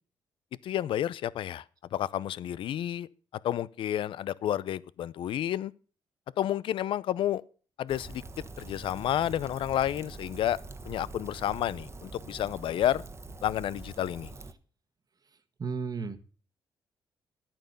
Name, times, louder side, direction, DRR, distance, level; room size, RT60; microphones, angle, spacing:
voice 1, 0.6-1.6 1.9-3.1 3.4-5.7 6.4-7.4 7.8-8.2 8.6-10.6 10.9-13.0 13.4-14.3, left 11 dB, 75° left, 0.6 m, -30 dB
Rain, 7.9-14.5, right 2 dB, 30° right, 1.3 m, -44 dB
voice 2, 15.6-16.2, right 5 dB, 45° right, 1.4 m, -33 dB
11.0 x 9.0 x 6.7 m
supercardioid pair, 65°, 9 cm